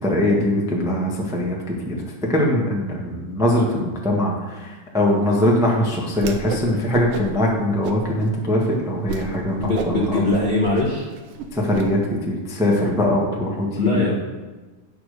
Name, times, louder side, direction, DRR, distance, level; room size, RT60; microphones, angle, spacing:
voice 1, 0.0-1.9 2.3-10.2 11.5-14.1, left 1 dB, 5° right, -3 dB, 0.3 m, -21 dB
Whoosh swoosh swish, 6.1-6.7 6.9-7.4 7.8-8.3 8.7-8.8 9.1-9.3 9.6-11.8, right 6 dB, 85° right, 1.2 m, -30 dB
voice 2, 9.6-11.1 13.7-14.1, left 2 dB, 30° left, -8 dB, 0.9 m, -21 dB
9.3 x 6.0 x 6.7 m, 1.2 s
omnidirectional pair, 3.6 m